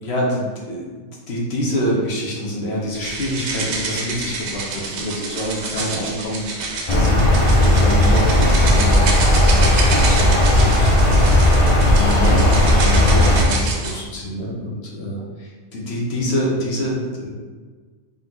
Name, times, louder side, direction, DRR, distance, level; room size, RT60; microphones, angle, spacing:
voice 1, 0.0-0.8 1.3-11.2 11.4-17.3, equal, 55° left, -3 dB, 1.2 m, -26 dB
sound 1, 2.9-14.0, right 3 dB, 65° right, 0.9 m, -28 dB
sound 2, 6.9-13.5, left 1 dB, 30° left, 0.8 m, -15 dB
4.0 x 2.9 x 3.8 m, 1.4 s
omnidirectional pair, 1.3 m